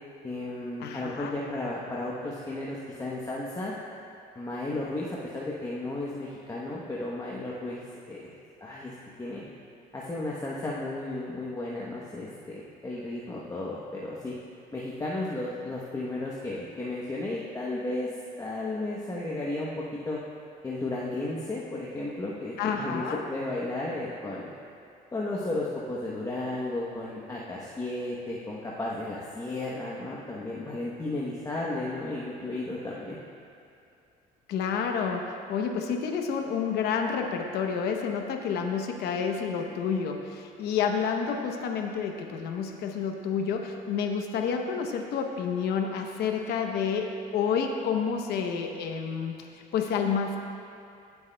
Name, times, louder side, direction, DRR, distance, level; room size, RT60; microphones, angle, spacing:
voice 1, 0.2-3.7 4.4-8.3 8.6-9.4 9.9-14.3 14.7-18.1 18.4-20.2 20.6-24.5 25.1-33.2, left 2 dB, 20° left, -5 dB, 1.0 m, -34 dB
voice 2, 0.8-1.3 22.6-23.2 34.5-50.4, left 6 dB, 75° left, 3 dB, 0.8 m, -29 dB
16.5 x 8.0 x 2.3 m, 2.5 s
cardioid pair, 110°, 17 cm